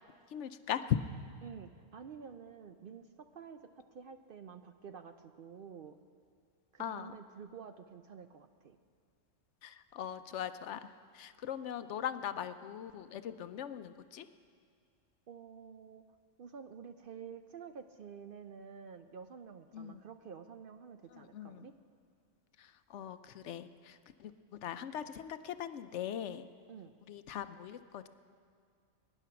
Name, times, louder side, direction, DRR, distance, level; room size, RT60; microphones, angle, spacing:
voice 1, 0.3-1.0 6.8-7.1 9.6-14.3 19.7-20.0 21.1-21.7 22.6-26.5 27.1-28.1, left 10 dB, 70° left, 11 dB, 0.8 m, -40 dB
voice 2, 1.4-6.0 6.7-8.8 15.3-16.0 16.4-21.7 26.7-26.9, right 6 dB, 60° right, 8 dB, 0.6 m, -50 dB
21.5 x 10.0 x 5.8 m, 2.2 s
omnidirectional pair, 1.3 m